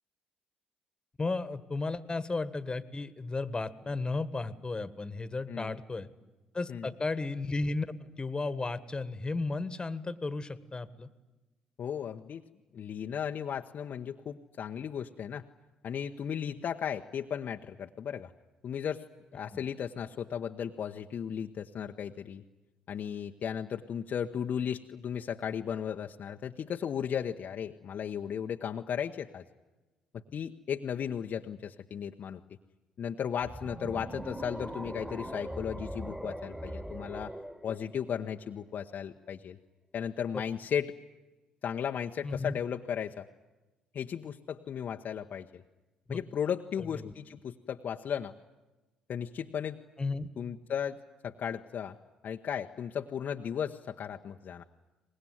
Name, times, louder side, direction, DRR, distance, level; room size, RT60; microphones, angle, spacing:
voice 1, 1.2-6.1 6.5-11.1 19.5-19.6 42.2-42.6 46.1-46.2 46.9-47.1 50.0-50.3, left 3 dB, 25° left, 15 dB, 1.6 m, -34 dB
voice 2, 11.8-12.4 12.7-15.4 15.8-18.3 18.6-19.0 19.3-22.4 22.9-29.4 30.1-32.4 33.0-37.3 37.6-39.6 39.9-40.9 41.6-43.3 43.9-45.6 46.1-48.3 49.1-49.8 50.4-52.0 52.2-54.6, left 8 dB, 50° left, 4 dB, 0.9 m, -35 dB
sound 1, 33.4-38.6, right 1 dB, 15° right, 2.6 m, -41 dB
24.5 x 20.5 x 9.5 m, 1.1 s
figure-of-eight pair, 45°, 4 cm